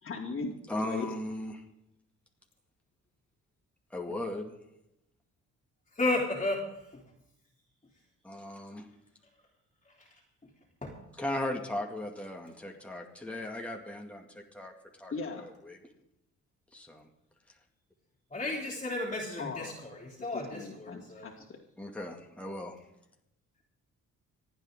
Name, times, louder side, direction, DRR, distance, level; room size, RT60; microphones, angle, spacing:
voice 1, 0.0-0.5 0.8-1.1 15.1-15.5 19.4-19.7 20.2-21.6, left 4 dB, 45° left, -5 dB, 2.8 m, -38 dB
voice 2, 0.7-1.6 3.9-4.5 8.2-8.9 11.1-14.7 15.0-15.8 16.7-17.1 21.8-22.8, left 1 dB, 5° left, 1 dB, 2.2 m, -37 dB
voice 3, 6.0-6.6 10.8-10.9 18.3-21.3, left 2 dB, 25° left, -5 dB, 3.2 m, -33 dB
26.5 x 9.2 x 3.8 m, 0.85 s
cardioid pair, 90°, 30 cm